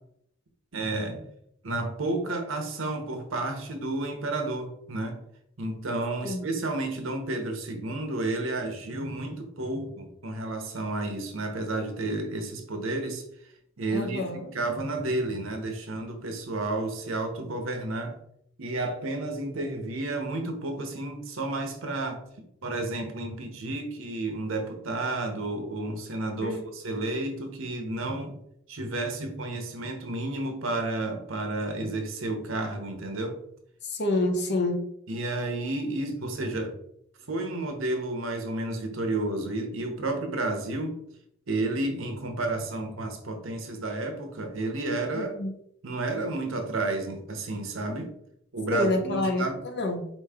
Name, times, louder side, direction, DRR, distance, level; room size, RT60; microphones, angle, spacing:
voice 1, 0.7-1.3 1.6-5.2 5.6-13.2 13.8-18.2 18.6-22.2 22.6-28.4 28.7-33.4 35.1-36.8 37.3-41.0 41.5-45.3 45.8-48.1 48.5-49.6, right 2 dB, 70° right, 5 dB, 0.9 m, -31 dB
voice 2, 13.9-14.4 26.4-26.7 26.9-27.1 33.9-34.9 45.1-45.5 48.7-50.1, left 2 dB, 55° left, 3 dB, 0.9 m, -28 dB
4.4 x 3.1 x 3.5 m, 0.73 s
head